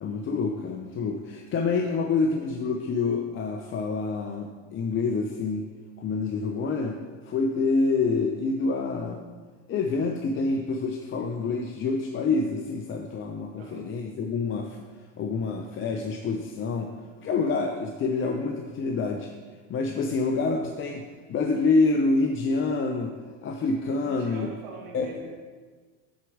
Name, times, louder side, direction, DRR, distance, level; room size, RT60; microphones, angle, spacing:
voice 1, 0.0-5.6 6.0-7.0 7.2-9.2 9.7-14.8 15.2-16.9 17.2-19.3 19.7-21.0 21.3-23.1 23.4-24.5 24.9-25.1, left 3 dB, 30° left, 3 dB, 0.8 m, -27 dB
voice 2, 13.6-13.9 24.0-25.4, right 4 dB, 60° right, 1 dB, 1.4 m, -43 dB
8.2 x 4.6 x 6.4 m, 1.4 s
supercardioid pair, 105°, 38 cm